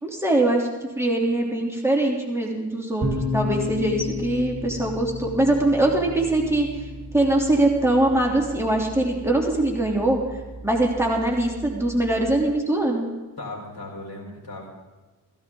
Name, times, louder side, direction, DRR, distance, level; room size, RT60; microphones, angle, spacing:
voice 1, 0.0-3.1 3.3-6.7 7.1-10.2 10.6-13.0, right 1 dB, 5° right, -1 dB, 3.1 m, -22 dB
sound 1, 3.0-12.4, left 2 dB, 45° right, 4.2 m, -34 dB
voice 2, 13.4-14.7, left 2 dB, 60° left, -1 dB, 4.8 m, -37 dB
16.0 x 16.0 x 3.8 m, 1.2 s
cardioid pair, 55°, 41 cm